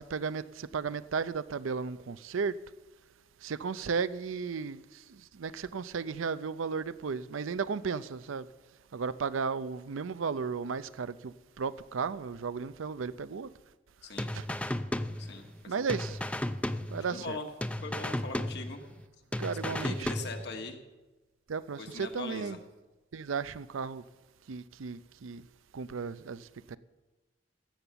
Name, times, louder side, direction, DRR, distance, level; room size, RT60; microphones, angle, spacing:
voice 1, 0.0-2.6 3.4-4.8 5.3-8.5 8.9-13.5 14.3-14.5 15.7-16.2 16.9-17.4 19.4-20.1 21.5-22.6 23.1-24.0 24.5-25.4 25.7-26.8, right 5 dB, 85° right, 0.5 m, -34 dB
sound 1, 14.2-15.6 15.9-17.3 17.6-19.0 19.3-20.7, left 1 dB, 5° left, 0.4 m, -34 dB
voice 2, 15.2-15.8 17.1-17.5 17.8-18.8 19.6-20.8 21.8-22.6, left 3 dB, 55° left, 1.6 m, -41 dB
15.0 x 9.0 x 6.9 m
head